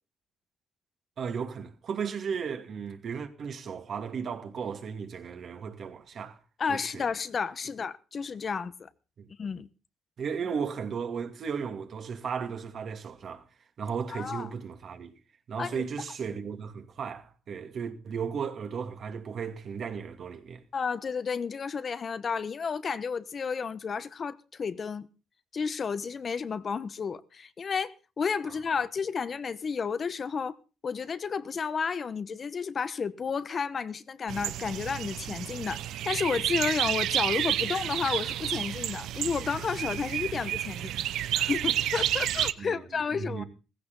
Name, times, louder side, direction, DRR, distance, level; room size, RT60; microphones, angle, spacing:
voice 1, 1.2-6.4 6.7-7.1 9.2-9.3 10.2-13.4 13.8-15.1 15.5-20.6 42.6-43.4, right 6 dB, 60° right, 2.5 m, -35 dB
voice 2, 6.6-8.9 9.4-9.7 14.1-14.5 15.6-15.8 20.7-25.1 25.5-30.5 30.8-43.4, left 5 dB, 45° left, 1.0 m, -32 dB
sound 1, 34.3-42.5, right 12 dB, 80° right, 0.7 m, -30 dB
16.5 x 15.5 x 4.0 m
cardioid pair, 90°, 0 cm